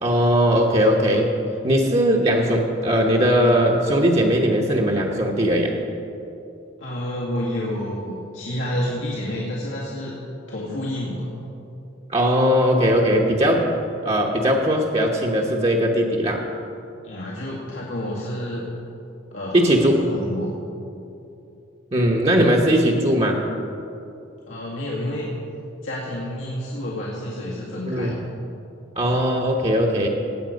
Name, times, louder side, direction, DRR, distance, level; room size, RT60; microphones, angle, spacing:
voice 1, 0.0-1.3 1.6-5.7 12.1-13.7 14.0-16.5 19.5-20.0 21.9-23.4 27.8-28.1 28.9-30.1, equal, 30° right, -1 dB, 1.0 m, -19 dB
voice 2, 6.8-10.2 10.5-11.3 17.0-18.7 19.3-20.6 24.5-25.4 25.8-28.2, left 1 dB, 85° left, -6 dB, 2.1 m, -29 dB
17.5 x 8.7 x 5.2 m, 2.7 s
head